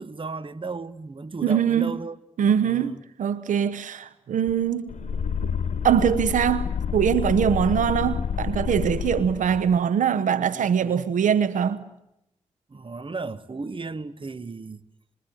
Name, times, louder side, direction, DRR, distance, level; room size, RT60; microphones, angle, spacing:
voice 1, 0.0-2.2 2.6-3.0 7.7-7.8 10.5-11.0 12.7-14.8, right 3 dB, 40° right, 1.3 m, -35 dB
voice 2, 1.4-1.9 2.4-4.9 5.4-5.5 5.8-11.8, right 8 dB, 90° right, 0.9 m, -23 dB
Bass guitar, 4.5-8.8 9.1-10.7, right 3 dB, 35° left, 4.1 m, -52 dB
sound 1, 4.9-9.8, left 7 dB, 70° left, 1.4 m, -29 dB
27.5 x 22.0 x 9.1 m
cardioid pair, 45°, 13 cm